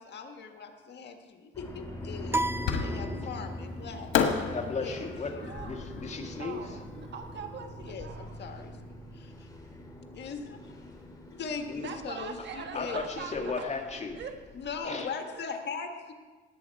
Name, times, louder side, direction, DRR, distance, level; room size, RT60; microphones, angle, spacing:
voice 1, 0.0-2.5 2.8-4.1 4.8-5.1 7.8-8.8 9.1-9.5 10.1-10.7 11.3-13.5 14.5-16.1, left 5 dB, 60° left, 5 dB, 1.6 m, -40 dB
sound 1, 1.5-14.8, left 1 dB, 20° left, 2.9 m, -43 dB
sound 2, 2.3-3.8, right 2 dB, 10° right, 0.4 m, -33 dB
Fireworks, 2.7-3.3 4.1-7.3, left 7 dB, 85° left, 1.3 m, -32 dB
voice 2, 4.4-6.8 11.7-11.8 12.7-14.2 14.8-15.1, left 4 dB, 35° left, 3 dB, 1.9 m, -35 dB
voice 3, 5.4-5.9 6.2-8.4 11.8-13.5 14.2-14.4, right 6 dB, 60° right, 4 dB, 1.6 m, -42 dB
18.5 x 8.4 x 4.7 m, 1.3 s
cardioid pair, 90°, 20 cm